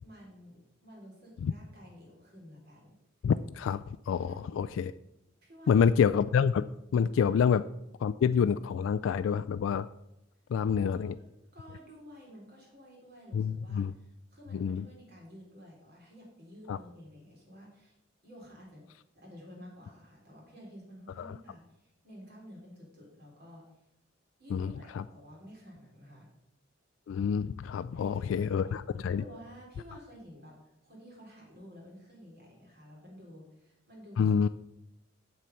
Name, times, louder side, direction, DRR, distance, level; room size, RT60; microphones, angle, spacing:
voice 1, 0.0-3.0 3.2-3.3 4.2-4.7 5.4-5.9 7.2-7.4 10.8-11.3 11.5-18.0 18.2-18.8 19.2-23.8 24.4-26.3 27.9-28.8 29.1-34.4, equal, 55° right, -3 dB, 3.9 m, -52 dB
voice 2, 3.2-4.9 5.7-6.6 6.9-7.6 8.0-9.9 10.5-11.1 13.3-13.9 14.5-14.8 16.7-16.8 21.2-21.3 24.5-25.0 27.1-29.2 34.2-34.5, left 7 dB, 75° left, 12 dB, 0.3 m, -27 dB
7.5 x 7.1 x 5.4 m, 0.87 s
head